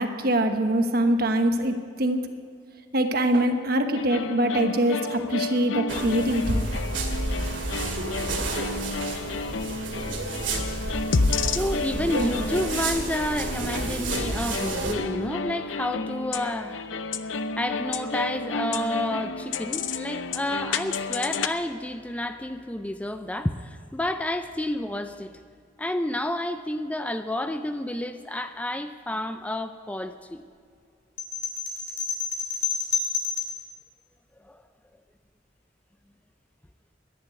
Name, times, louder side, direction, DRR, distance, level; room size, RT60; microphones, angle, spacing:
voice 1, 0.0-2.2 2.9-6.6, right 1 dB, 55° right, 1.2 m, -23 dB
sound 1, 3.9-21.5, left 4 dB, 90° left, 0.6 m, -31 dB
sound 2, 5.9-14.9, right 2 dB, 85° right, 2.2 m, -30 dB
voice 2, 11.4-17.1 17.5-25.4 25.8-30.4 34.4-34.6, left 1 dB, 5° left, 0.4 m, -30 dB
sound 3, 31.2-33.6, left 5 dB, 55° left, 2.6 m, -29 dB
11.5 x 10.5 x 9.4 m
head